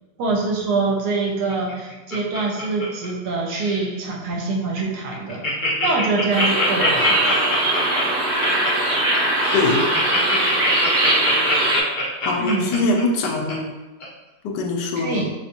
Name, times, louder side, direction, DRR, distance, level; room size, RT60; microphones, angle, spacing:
voice 1, 0.2-5.4 5.8-7.3 12.4-12.8 15.0-15.3, right 3 dB, 70° right, -1 dB, 1.1 m, -24 dB
Laughter, 1.5-3.3 3.5-3.9 4.4-4.5 4.7-4.8 5.1-13.5 14.0-14.1, left 2 dB, 50° left, 0.6 m, -25 dB
sound 1, 6.3-11.8, right 1 dB, 50° right, 0.7 m, -21 dB
voice 2, 9.5-10.0 12.2-13.7 14.4-15.3, left 2 dB, 80° left, 2 dB, 1.2 m, -22 dB
3.3 x 2.8 x 2.7 m, 1.1 s
omnidirectional pair, 1.8 m